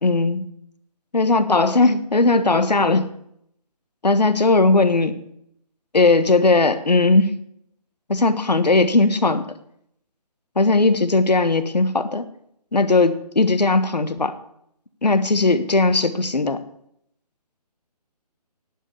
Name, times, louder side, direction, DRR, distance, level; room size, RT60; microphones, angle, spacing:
voice 1, 0.0-0.4 1.1-3.1 4.0-5.2 5.9-7.3 8.1-9.5 10.6-12.3 12.7-14.3 15.0-16.6, left 3 dB, 85° left, 11 dB, 1.4 m, -18 dB
11.0 x 7.6 x 8.1 m, 0.71 s
figure-of-eight pair, 150°, 21 cm